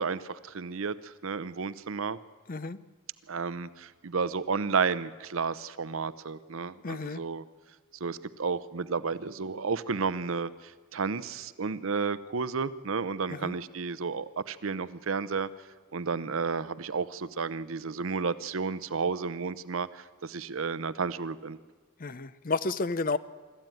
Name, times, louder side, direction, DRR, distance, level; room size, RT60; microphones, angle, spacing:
voice 1, 0.0-2.2 3.3-7.4 8.0-15.5 15.9-21.6, right 5 dB, 80° right, 15 dB, 0.7 m, -32 dB
voice 2, 6.8-7.2 13.3-13.5 22.0-23.2, left 3 dB, 40° left, 15 dB, 0.6 m, -31 dB
24.5 x 13.5 x 9.1 m, 1.5 s
head